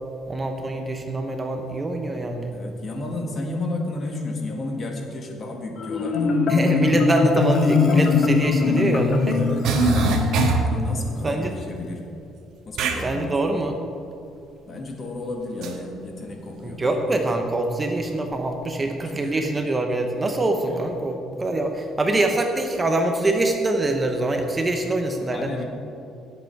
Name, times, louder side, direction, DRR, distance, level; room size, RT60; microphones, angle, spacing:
voice 1, 0.3-2.5 6.5-9.4 11.2-11.6 13.0-13.8 16.6-25.5, right 2 dB, 20° right, 4 dB, 0.9 m, -24 dB
voice 2, 2.5-6.4 9.3-9.8 10.6-12.1 12.6-13.4 14.6-16.8 19.0-19.5 20.7-20.8 25.3-25.6, left 2 dB, 35° left, 2 dB, 1.8 m, -32 dB
Marimba xylophone, 5.8-10.9, left 4 dB, 55° left, 1.0 m, -21 dB
sound 1, 8.0-8.1 9.3-9.4 9.6-10.7 12.7-13.0 15.6-15.7, right 4 dB, 70° right, 1.4 m, -22 dB
18.0 x 7.9 x 4.7 m, 2.7 s
cardioid pair, 140°, 0 cm